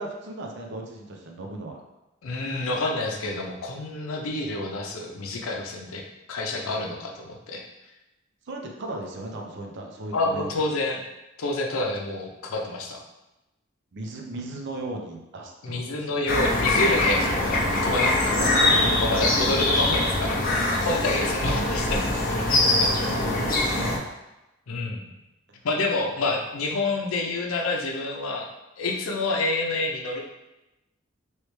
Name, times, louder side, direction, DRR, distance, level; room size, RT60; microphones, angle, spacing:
voice 1, 0.0-1.8 8.5-10.7 13.9-16.3 18.4-19.1 21.4-21.6 22.8-24.1 25.5-25.6, right 2 dB, 55° right, 1 dB, 0.5 m, -36 dB
voice 2, 2.2-6.0 6.3-7.6 10.1-11.0 11.4-13.0 15.6-22.0 22.3-23.1 24.7-25.1 25.6-28.5 28.8-30.2, left 2 dB, 85° left, 1 dB, 0.6 m, -28 dB
sound 1, 16.3-24.0, left 2 dB, 45° left, 0.6 m, -23 dB
3.2 x 3.1 x 3.1 m, 0.96 s
head